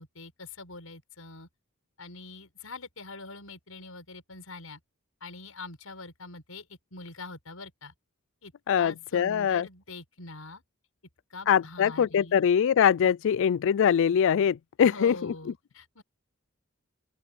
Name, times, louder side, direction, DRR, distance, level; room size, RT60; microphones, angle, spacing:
voice 1, 0.0-1.5 2.0-4.8 5.2-7.9 8.4-10.6 11.3-12.4 14.8-16.0, left 3 dB, 80° left, 6.6 m, -44 dB
voice 2, 8.7-9.7 11.5-15.3, left 8 dB, 65° left, 0.3 m, -23 dB
open air
head